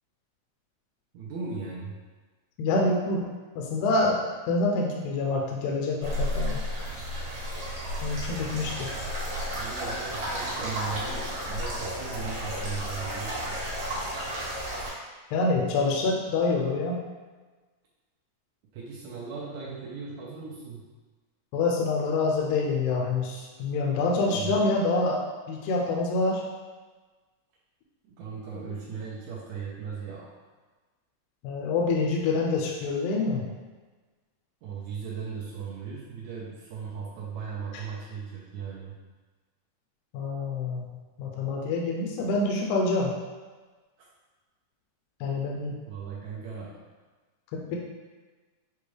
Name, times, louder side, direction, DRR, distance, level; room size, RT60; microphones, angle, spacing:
voice 1, 1.1-2.0 9.5-13.6 18.7-20.8 24.3-24.7 28.1-30.4 34.6-39.0 45.9-46.8, right 5 dB, 75° right, -5 dB, 1.8 m, -37 dB
voice 2, 2.6-3.2 3.6-6.6 8.0-9.0 15.3-17.0 21.5-26.4 31.4-33.5 40.1-40.9 41.2-43.1 45.2-45.7 47.5-47.8, left 3 dB, 80° left, -1 dB, 1.9 m, -26 dB
sound 1, 6.0-14.9, equal, 55° right, 1.9 m, -32 dB
6.9 x 2.4 x 3.1 m, 1.3 s
omnidirectional pair, 3.7 m